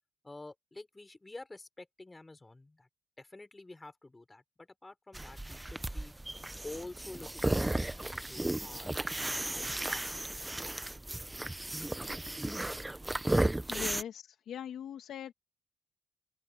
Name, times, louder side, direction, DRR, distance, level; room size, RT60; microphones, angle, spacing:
voice 1, 0.2-2.9 3.2-6.1 6.6-9.0 9.3-10.2 10.5-10.7 13.7-13.9, left 2 dB, 20° left, 6.4 m, -49 dB
sound 1, 5.1-14.0, right 1 dB, 15° right, 1.0 m, -34 dB
voice 2, 13.7-15.3, left 9 dB, 75° left, 2.3 m, -41 dB
open air
cardioid pair, 75°, 0 cm